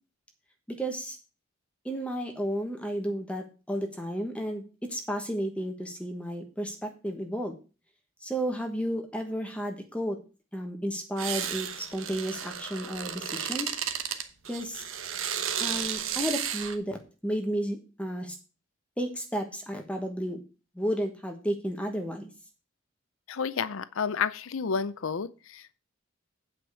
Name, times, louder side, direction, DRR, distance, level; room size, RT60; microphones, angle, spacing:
voice 1, 0.7-1.2 1.8-7.5 8.2-10.2 10.5-13.7 14.5-14.8 15.6-17.0 17.2-18.4 19.0-20.4 20.7-22.3, equal, 5° left, 1.2 m, -32 dB
sound 1, 11.2-16.8, right 8 dB, 70° right, 1.1 m, -33 dB
voice 2, 23.3-25.8, left 6 dB, 70° left, 0.5 m, -31 dB
8.9 x 5.0 x 7.0 m
head